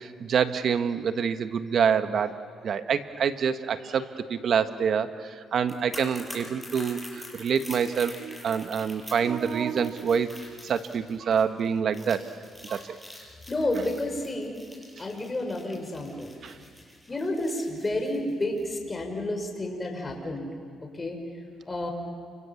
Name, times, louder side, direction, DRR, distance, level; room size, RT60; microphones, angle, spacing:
voice 1, 0.0-2.3 2.6-7.0 7.3-10.3 10.6-12.2 12.6-12.9 16.4-16.5, right 7 dB, 60° right, 9 dB, 1.4 m, -26 dB
sound 1, 5.6-18.7 19.0-19.2, left 1 dB, ahead, 8.0 m, -46 dB
voice 2, 13.5-14.6 15.0-16.3 17.1-20.5 20.8-21.2 21.7-21.9, left 1 dB, 25° left, 3 dB, 5.5 m, -30 dB
29.0 x 25.5 x 7.3 m, 2.3 s
cardioid pair, 90°, 0 cm